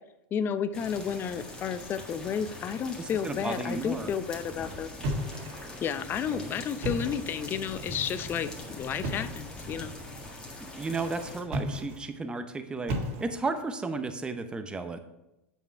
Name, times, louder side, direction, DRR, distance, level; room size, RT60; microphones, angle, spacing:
voice 1, 0.3-4.9 5.8-9.9, left 7 dB, 30° left, 12 dB, 0.6 m, -32 dB
sound 1, 0.7-11.4, left 1 dB, 10° left, 1.7 m, -42 dB
voice 2, 3.0-4.1 6.3-6.5 10.6-15.0, right 3 dB, 15° right, 8 dB, 0.7 m, -34 dB
sound 2, 5.0-5.8 6.7-7.4 9.0-9.5 11.4-12.1 12.9-13.6, equal, 55° right, 1.7 m, -34 dB
8.7 x 5.3 x 4.5 m, 0.93 s
hypercardioid pair, 110°, 7 cm